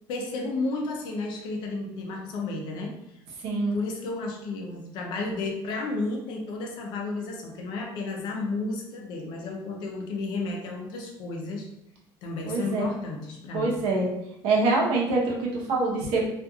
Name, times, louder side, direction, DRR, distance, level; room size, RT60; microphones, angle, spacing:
voice 1, 0.1-2.9 3.5-11.7 12.2-13.8, left 3 dB, 60° left, 1 dB, 0.6 m, -32 dB
voice 2, 3.4-3.7 12.4-12.8 13.5-14.1 14.4-16.3, right 3 dB, 80° right, -2 dB, 0.8 m, -25 dB
2.9 x 2.5 x 2.3 m, 0.82 s
cardioid pair, 180°, 9 cm